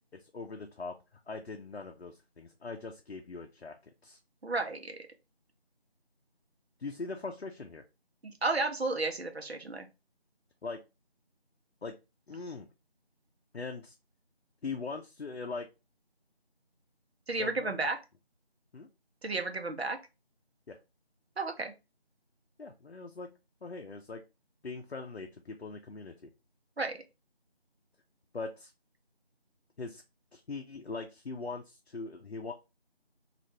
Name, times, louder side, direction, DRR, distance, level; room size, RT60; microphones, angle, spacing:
voice 1, 0.1-1.0 1.3-4.2 6.8-7.8 10.6-10.8 11.8-12.0 12.3-12.7 13.5-13.9 14.6-15.7 17.4-17.9 18.7-18.9 20.7-20.8 22.6-23.3 23.6-24.2 24.6-26.3 28.3-28.7 29.8-30.0 30.3-32.5, left 4 dB, 75° left, 3 dB, 0.5 m, -41 dB
voice 2, 4.4-5.0 8.4-9.9 17.3-18.0 19.2-20.0 21.4-21.7 26.8-27.0, right 3 dB, 75° right, 5 dB, 0.7 m, -32 dB
2.7 x 2.5 x 3.1 m, 0.27 s
figure-of-eight pair, 175°, 32 cm